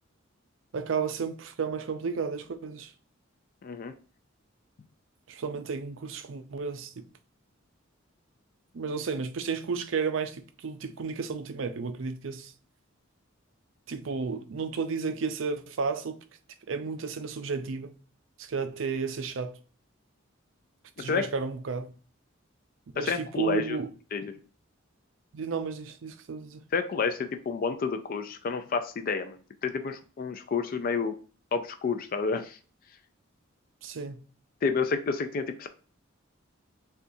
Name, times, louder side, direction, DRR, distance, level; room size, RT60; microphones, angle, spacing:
voice 1, 0.7-2.9 5.3-7.0 8.7-12.5 13.9-16.2 16.7-17.9 18.4-19.6 21.0-21.9 22.9-23.9 25.3-26.6 33.8-34.2, right 5 dB, 70° right, 0.5 m, -32 dB
voice 2, 3.6-3.9 21.0-21.3 23.0-23.8 24.1-24.4 26.7-31.1 31.5-32.6 34.6-35.7, left 5 dB, 45° left, 0.4 m, -30 dB
6.7 x 2.4 x 2.6 m
head